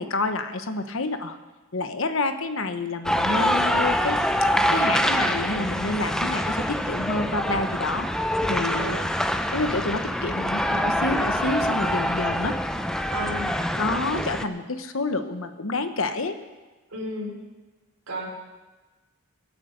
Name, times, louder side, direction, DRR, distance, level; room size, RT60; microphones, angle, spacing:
voice 1, 0.0-1.4 1.7-4.2 4.7-8.1 8.5-9.0 9.5-12.6 13.7-16.4, left 3 dB, 70° left, 9 dB, 1.1 m, -28 dB
sound 1, 3.0-14.4, equal, 5° left, 0.5 m, -25 dB
voice 2, 8.5-9.1 13.1-13.5 16.9-17.4 18.1-18.3, equal, 85° right, 0 dB, 3.9 m, -33 dB
24.5 x 8.5 x 5.2 m, 1.2 s
head